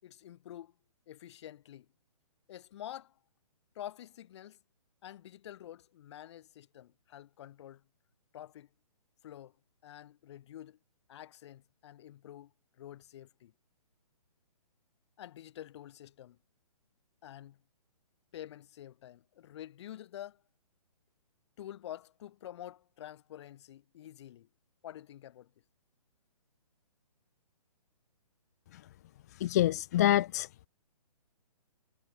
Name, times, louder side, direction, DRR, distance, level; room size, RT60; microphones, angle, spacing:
voice 1, 0.0-0.7 1.1-1.9 2.5-3.2 3.7-4.6 5.0-7.8 8.3-8.7 9.2-9.5 9.8-10.8 11.1-13.5 15.2-16.4 17.2-17.6 18.3-20.4 21.6-24.5 24.8-25.5, left 12 dB, 45° left, 5.7 m, -48 dB
voice 2, 29.3-30.7, left 13 dB, 25° left, 0.4 m, -27 dB
figure-of-eight pair, 135°, 20 cm